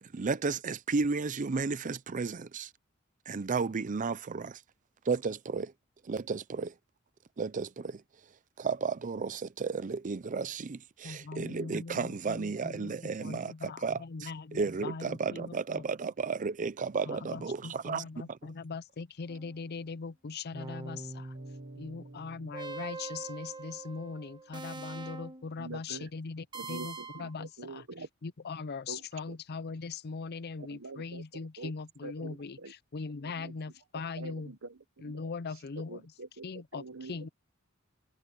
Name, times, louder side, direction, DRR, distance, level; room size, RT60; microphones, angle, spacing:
voice 1, 0.0-2.7 3.3-4.6 5.0-5.7 6.0-6.8 7.4-8.0 8.6-18.4, right 4 dB, 40° right, 0.5 m, -33 dB
voice 2, 11.0-12.9 13.2-15.8 17.1-21.3 21.8-27.8 28.2-34.5 35.0-36.0 36.4-37.3, left 4 dB, 50° left, 0.5 m, -40 dB
sound 1, 19.3-19.8 20.5-25.6 26.5-27.4, right 3 dB, 20° right, 1.2 m, -44 dB
Mallet percussion, 21.3-25.8, right 2 dB, 90° right, 2.4 m, -60 dB
voice 3, 25.6-26.1 26.5-28.1 28.9-29.4 30.6-31.7 32.0-32.7 33.4-33.5 34.2-35.2 35.8-36.5 36.7-37.3, right 3 dB, 70° right, 1.1 m, -45 dB
head